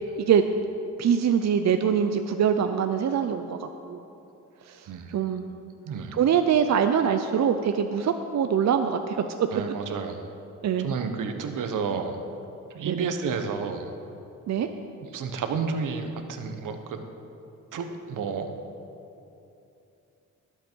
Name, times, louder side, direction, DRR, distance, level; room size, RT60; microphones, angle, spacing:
voice 1, 1.0-4.0 4.7-5.5 6.1-9.5 10.6-10.9 12.8-13.1 14.5-14.7, right 8 dB, 60° right, 7 dB, 0.6 m, -24 dB
voice 2, 4.9-5.4 5.9-6.2 9.5-10.2 10.8-12.2 12.7-13.9 15.1-17.1 17.7-18.6, right 5 dB, 80° right, 6 dB, 1.1 m, -31 dB
20.0 x 8.1 x 4.6 m, 2.8 s
cardioid pair, 75°, 31 cm